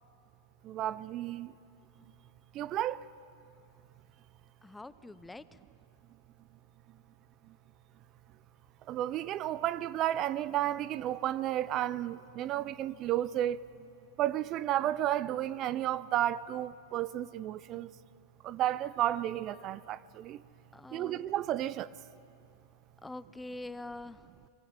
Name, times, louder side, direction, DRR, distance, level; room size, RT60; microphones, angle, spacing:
voice 1, 0.6-1.5 2.5-3.0 8.9-13.7 14.2-17.9 18.4-20.4 20.9-21.9, right 12 dB, 40° right, 0.5 m, -32 dB
voice 2, 4.6-5.6 20.7-21.2 23.0-24.3, left 2 dB, 10° left, 0.5 m, -45 dB
28.5 x 22.5 x 5.1 m
hypercardioid pair, 115°, 0 cm